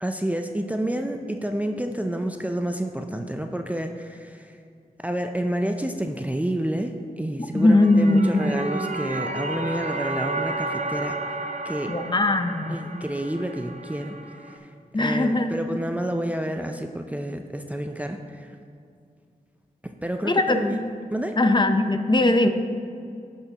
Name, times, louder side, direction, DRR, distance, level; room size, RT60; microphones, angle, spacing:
voice 1, 0.0-4.6 5.0-11.2 11.6-12.0 12.7-14.1 14.4-14.7 15.0-18.6 19.8-20.8 21.1-21.4, right 1 dB, 10° right, 4 dB, 0.5 m, -29 dB
voice 2, 7.5-8.5 11.9-13.0 14.9-15.6 20.2-20.6 21.4-22.5, left 2 dB, 30° left, 7 dB, 0.7 m, -20 dB
sound 1, 7.6-14.6, right 2 dB, 50° right, 0.7 m, -32 dB
16.5 x 5.6 x 2.9 m, 2.4 s
cardioid pair, 60°, 15 cm